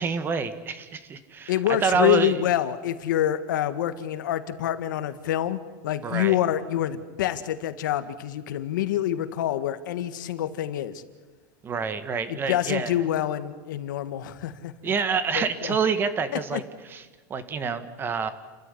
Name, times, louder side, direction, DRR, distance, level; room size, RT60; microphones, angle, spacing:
voice 1, 0.0-1.5 1.8-2.4 6.0-6.4 11.6-12.9 14.8-16.6 16.9-17.0 17.3-18.3, right 5 dB, 20° right, 12 dB, 1.7 m, -27 dB
voice 2, 1.5-11.0 12.3-14.7 15.3-15.8 16.3-16.6, left 11 dB, 85° left, 11 dB, 1.8 m, -26 dB
30.0 x 14.5 x 10.0 m, 1.4 s
supercardioid pair, 150°, 10 cm